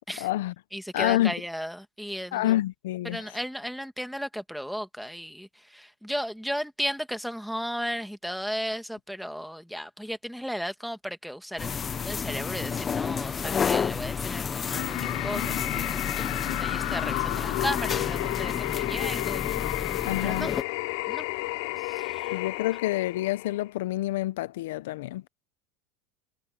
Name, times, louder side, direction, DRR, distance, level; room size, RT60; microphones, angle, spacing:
voice 1, 0.2-0.5 0.9-1.3 2.3-3.4 20.0-20.5 22.3-25.3, left 15 dB, 90° left, 0.6 m, -28 dB
voice 2, 0.7-2.5 3.0-5.5 5.7-11.8 12.0-19.9 20.2-20.5 21.1-21.3 21.9-22.3, equal, ahead, 1.4 m, -35 dB
sound 1, 11.6-20.6, left 6 dB, 20° left, 0.5 m, -31 dB
sound 2, 14.7-23.7, left 22 dB, 65° left, 2.6 m, -32 dB
supercardioid pair, 165°, 0 cm